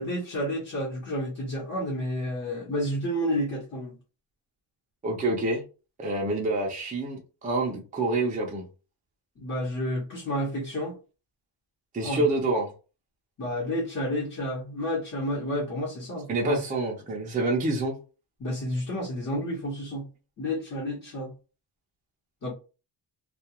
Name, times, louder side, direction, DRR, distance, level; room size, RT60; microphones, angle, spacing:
voice 1, 0.0-3.9 9.4-10.9 12.0-12.3 13.4-16.6 18.4-20.1 20.4-21.3 22.4-22.5, equal, 35° left, 0.9 m, -30 dB
voice 2, 5.0-5.6 6.0-8.6 11.9-12.7 16.3-18.0, right 2 dB, 20° right, 0.5 m, -27 dB
2.3 x 2.3 x 2.9 m
wide cardioid pair, 175°, 47 cm